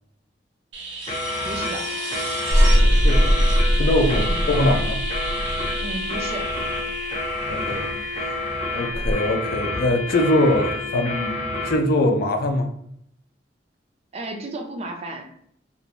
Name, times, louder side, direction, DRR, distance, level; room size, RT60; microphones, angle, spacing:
sound 1, 0.7-9.4 11.8-11.9, right 3 dB, 80° right, 0.7 m, -33 dB
sound 2, 1.1-11.8, left 2 dB, 35° left, 0.8 m, -29 dB
voice 1, 1.4-1.9 4.3-4.4 5.8-6.6 14.1-15.3, right 2 dB, 35° right, 0.4 m, -33 dB
sound 3, 2.5-6.9 8.9-9.1, equal, ahead, 0.7 m, -20 dB
voice 2, 2.7-3.4 3.7-5.0 7.5-7.9 8.2-8.3 8.7-12.7, left 1 dB, 55° left, 0.4 m, -22 dB
2.5 x 2.1 x 2.9 m
head